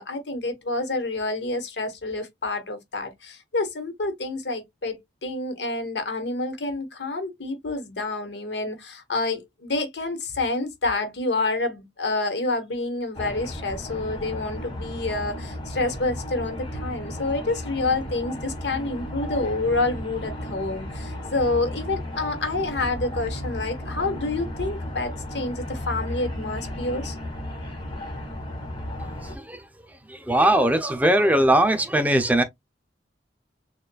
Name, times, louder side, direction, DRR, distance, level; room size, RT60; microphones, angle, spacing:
voice 1, 0.0-27.2, left 2 dB, 70° left, 1.2 m, -28 dB
sound 1, 13.1-29.4, left 1 dB, 30° left, 1.4 m, -34 dB
voice 2, 29.2-29.6 30.1-32.4, right 1 dB, 10° right, 0.5 m, -20 dB
6.6 x 2.4 x 2.2 m
head